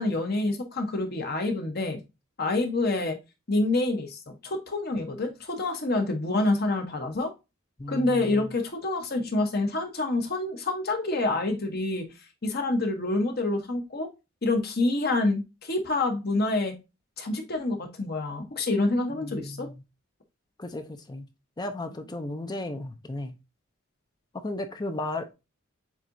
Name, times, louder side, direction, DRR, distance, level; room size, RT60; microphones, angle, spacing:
voice 1, 0.0-2.0 2.4-3.2 3.5-7.3 7.9-12.0 12.4-14.1 14.4-16.7 17.2-19.7, left 2 dB, 50° left, 1.0 m, -27 dB
voice 2, 7.8-8.5 19.1-19.8 20.6-21.3 21.6-23.3 24.3-25.3, left 2 dB, 20° left, 0.5 m, -35 dB
7.3 x 2.8 x 2.6 m
head